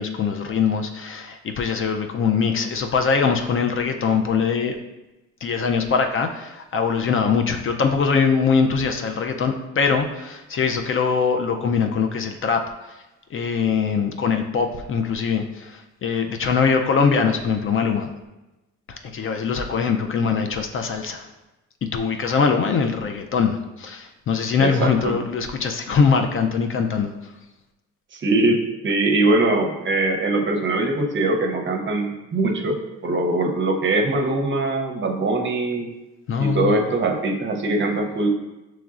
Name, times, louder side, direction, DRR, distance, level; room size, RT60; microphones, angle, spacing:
voice 1, 0.0-4.8 5.4-12.6 13.3-18.1 18.9-21.3 21.8-27.1 36.3-36.8, left 5 dB, 45° left, 5 dB, 0.4 m, -22 dB
voice 2, 24.6-25.2 28.1-35.9 36.4-38.3, right 2 dB, 40° right, 2 dB, 0.7 m, -22 dB
5.8 x 3.1 x 2.4 m, 1.0 s
cardioid pair, 90°, 30 cm